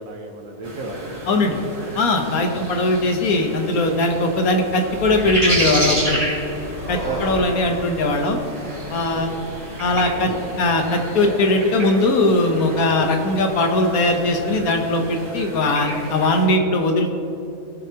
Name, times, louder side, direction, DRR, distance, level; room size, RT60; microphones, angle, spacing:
voice 1, 0.0-1.9 2.5-2.7 7.0-7.3 9.1-9.4, right 3 dB, 65° right, 3 dB, 1.4 m, -34 dB
sound 1, 0.6-16.5, right 1 dB, 25° right, 2.2 m, -31 dB
voice 2, 1.3-1.6 2.0-6.2 6.9-8.4 8.9-9.3 9.8-10.3 10.6-17.1, left 2 dB, 75° left, 4 dB, 1.4 m, -20 dB
sound 2, 4.9-10.4, equal, 40° left, 2.7 m, -34 dB
18.0 x 6.9 x 2.9 m, 2.8 s
omnidirectional pair, 1.6 m